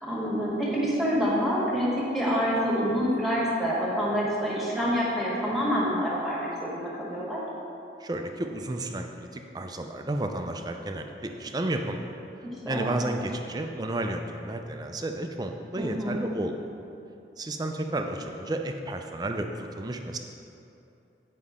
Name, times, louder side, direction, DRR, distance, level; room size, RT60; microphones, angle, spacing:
voice 1, 0.0-7.4 12.6-12.9 15.8-16.2, equal, ahead, -7 dB, 1.5 m, -27 dB
voice 2, 8.0-12.0 12.7-16.6 17.4-20.2, right 1 dB, 20° right, 5 dB, 0.4 m, -32 dB
9.5 x 5.3 x 3.6 m, 2.8 s
head